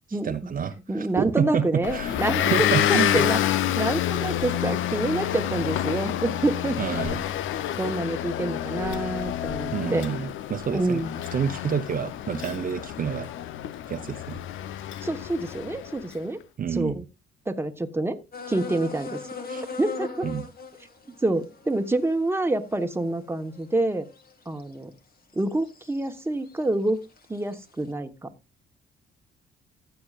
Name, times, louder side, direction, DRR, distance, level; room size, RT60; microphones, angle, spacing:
voice 1, 0.1-2.2 2.5-3.3 6.8-7.3 8.9-9.1 9.7-11.0 11.3-13.3 13.9-14.4 16.6-17.0 19.5-19.6 20.2-20.5, right 7 dB, 45° right, 0.8 m, -29 dB
voice 2, 0.9-2.5 2.9-3.4 3.8-7.0 7.8-10.0 10.7-11.2 15.0-16.4 16.7-17.0 17.5-18.2 18.5-19.2 19.8-20.3 21.2-24.1 24.5-24.9 25.3-27.0 27.3-28.3, right 2 dB, 10° right, 1.2 m, -27 dB
Motor vehicle (road) / Engine, 1.8-16.1, left 11 dB, 80° left, 0.7 m, -28 dB
sound 1, 18.3-24.7 25.3-26.1 26.5-27.6, left 4 dB, 50° left, 2.1 m, -39 dB
15.0 x 7.9 x 2.4 m
cardioid pair, 90°, 20 cm